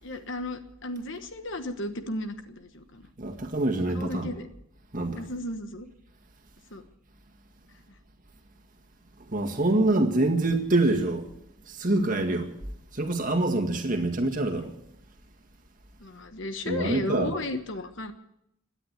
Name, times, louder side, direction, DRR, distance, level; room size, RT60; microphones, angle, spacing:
voice 1, 0.0-3.1 3.9-4.5 5.2-5.9 6.7-6.8 16.0-18.1, left 1 dB, 55° left, 1.2 m, -34 dB
voice 2, 3.2-4.3 4.9-5.3 9.3-11.3 11.7-12.5 12.9-14.7 16.7-17.3, right 2 dB, 40° right, 1.9 m, -25 dB
17.5 x 10.0 x 8.1 m
head